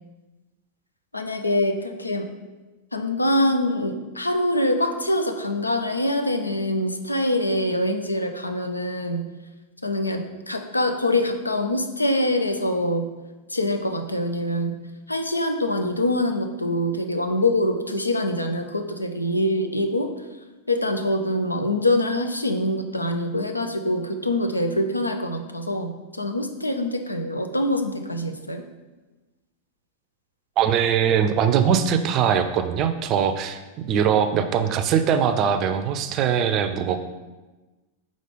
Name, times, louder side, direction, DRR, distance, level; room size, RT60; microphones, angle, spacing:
voice 1, 1.1-2.3 2.9-9.3 9.8-13.1 13.5-14.8 15.1-20.1 20.7-28.6, left 1 dB, 85° left, 6 dB, 0.5 m, -24 dB
voice 2, 30.6-37.0, right 8 dB, 35° right, 9 dB, 0.4 m, -21 dB
4.9 x 3.9 x 5.0 m, 1.2 s
figure-of-eight pair, 90°, 0 cm